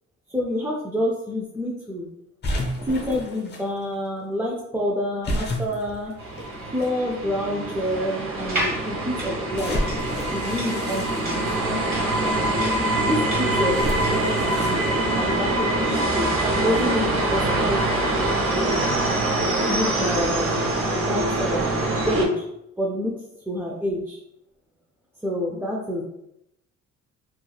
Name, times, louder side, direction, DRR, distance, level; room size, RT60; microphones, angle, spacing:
voice 1, 0.3-2.1 2.9-6.1 6.7-9.9 10.3-12.6 13.1-14.8 15.1-17.8 19.7-20.5 20.8-22.4 22.8-23.2 23.5-24.2 25.2-26.0, left 1 dB, 10° right, -3 dB, 0.4 m, -28 dB
sound 1, 2.4-3.6 5.2-6.9 7.6-7.7 9.5-11.9 13.7-14.9, equal, 35° left, 0.8 m, -31 dB
sound 2, 6.2-22.3, right 2 dB, 45° right, 0.7 m, -24 dB
sound 3, 8.4-14.3, right 1 dB, 30° right, 1.1 m, -33 dB
3.1 x 2.4 x 2.3 m, 0.81 s
cardioid pair, 90°, 30 cm